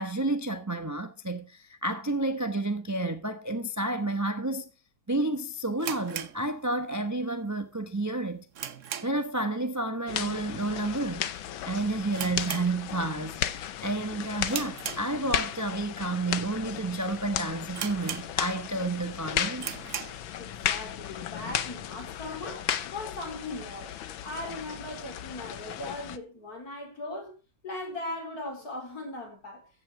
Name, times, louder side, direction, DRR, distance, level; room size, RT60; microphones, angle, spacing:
voice 1, 0.0-4.7 5.1-8.5 9.0-11.3 11.7-19.7, right 2 dB, 15° right, 0.5 m, -30 dB
sound 1, 5.8-7.1 7.4-7.5 8.0-9.4 9.7-10.0 10.2-10.3 11.0-11.3 11.6-11.7 12.1-13.3 13.6-13.9 14.4-15.6 16.1-16.2 16.8-16.9 17.2-17.3 17.7-18.7 19.1-19.2 19.5-20.3, right 9 dB, 50° right, 1.0 m, -38 dB
sound 2, 10.1-26.2, left 11 dB, 85° left, 1.7 m, -41 dB
sound 3, 10.1-10.4 11.2-11.5 12.3-12.6 13.4-13.6 14.4-14.6 15.3-15.6 16.3-16.6 17.3-17.6 18.4-18.6 19.3-19.6 20.6-20.9 21.5-21.8 22.7-22.9, left 10 dB, 65° left, 1.5 m, -29 dB
voice 2, 20.4-23.9 24.2-27.4 27.6-29.7, left 2 dB, 50° left, 5.0 m, -39 dB
14.5 x 8.7 x 4.8 m
omnidirectional pair, 2.1 m